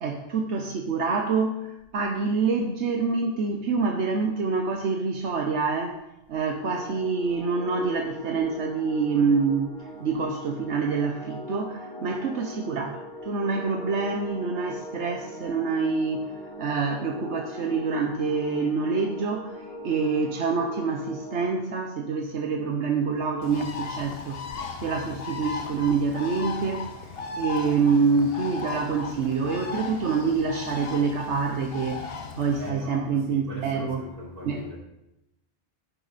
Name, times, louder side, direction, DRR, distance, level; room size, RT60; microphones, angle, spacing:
voice 1, 0.0-6.0 6.3-9.7 10.0-16.3 16.6-24.4 24.8-26.8 27.4-32.1 32.4-34.0 34.5-34.6, right 4 dB, 75° right, 3 dB, 1.2 m, -26 dB
sound 1, 6.7-21.5, equal, 5° left, 3.1 m, -41 dB
Bird, 23.4-32.7, left 4 dB, 60° left, 1.1 m, -36 dB
voice 2, 32.5-34.8, equal, 35° right, -8 dB, 4.3 m, -40 dB
10.5 x 10.5 x 4.2 m, 0.88 s
omnidirectional pair, 1.2 m